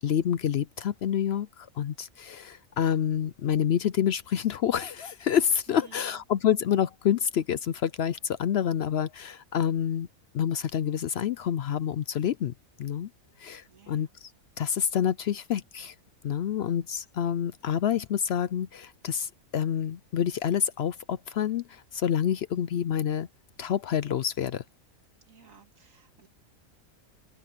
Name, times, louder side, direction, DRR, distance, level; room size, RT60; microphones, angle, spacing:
voice 1, 0.0-10.1 10.3-12.5 12.8-13.1 13.4-14.3 14.6-15.9 16.2-23.3 23.6-24.6, left 9 dB, 65° left, 0.7 m, -28 dB
voice 2, 5.7-6.2 13.7-14.2 25.2-26.3, right 6 dB, 80° right, 2.5 m, -55 dB
open air
omnidirectional pair, 1.4 m